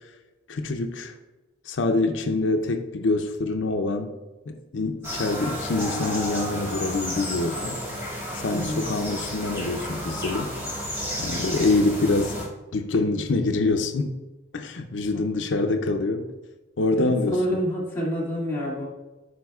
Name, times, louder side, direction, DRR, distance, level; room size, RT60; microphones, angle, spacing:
voice 1, 0.5-1.1 1.7-4.1 4.5-7.8 8.3-10.5 11.2-12.4 12.7-14.1 14.5-16.3 16.8-17.4, left 2 dB, 85° left, 5 dB, 0.6 m, -25 dB
sound 1, 5.0-12.5, equal, 15° right, 2.0 m, -32 dB
voice 2, 8.5-8.9 15.1-15.3 17.0-18.9, equal, 10° left, -7 dB, 2.2 m, -28 dB
12.0 x 4.9 x 2.4 m, 1.1 s
head